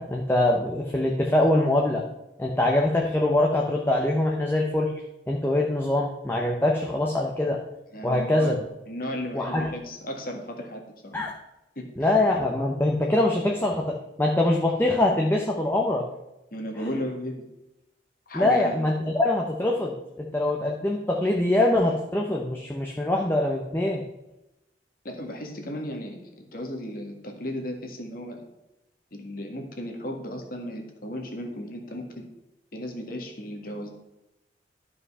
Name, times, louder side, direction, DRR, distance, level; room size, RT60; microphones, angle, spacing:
voice 1, 0.0-2.0 2.4-4.9 5.3-7.6 8.0-8.6 9.3-9.7 11.1-11.3 12.0-16.1 16.8-16.9 18.3-24.0, left 1 dB, 10° left, 0 dB, 0.8 m, -23 dB
voice 2, 7.9-8.6 8.9-11.2 11.8-12.1 16.5-17.4 18.3-18.8 25.0-28.4 29.1-32.3 32.7-33.9, equal, 50° left, 3 dB, 1.8 m, -35 dB
12.0 x 5.5 x 5.5 m, 0.92 s
head